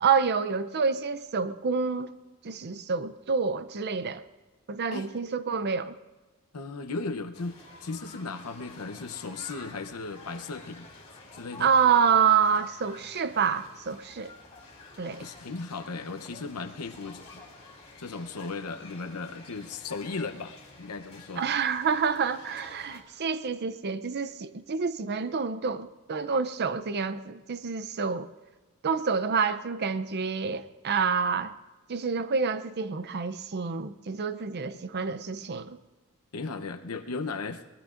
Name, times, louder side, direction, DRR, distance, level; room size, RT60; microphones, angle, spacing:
voice 1, 0.0-2.2 2.4-4.2 4.7-5.9 11.6-14.3 15.0-15.2 21.4-28.3 28.8-31.5 31.9-35.8, right 6 dB, 50° right, 0.6 m, -27 dB
voice 2, 6.5-10.9 11.3-11.7 15.2-17.4 18.0-21.5 36.3-37.7, left 3 dB, 90° left, 0.8 m, -36 dB
sound 1, 7.3-23.0, left 3 dB, 30° left, 2.8 m, -50 dB
23.0 x 19.0 x 2.5 m
head